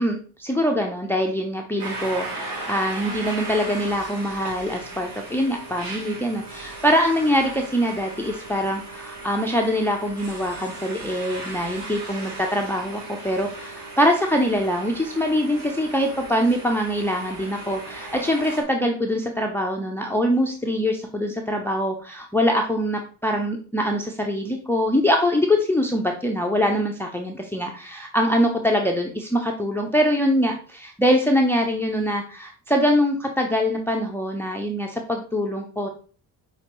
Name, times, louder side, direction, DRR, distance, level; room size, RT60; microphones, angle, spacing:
voice 1, 0.0-35.9, equal, 5° left, 2 dB, 0.7 m, -23 dB
sound 1, 1.8-18.6, right 2 dB, 70° right, 2.1 m, -37 dB
5.8 x 2.9 x 3.0 m, 0.40 s
hypercardioid pair, 50°, 43 cm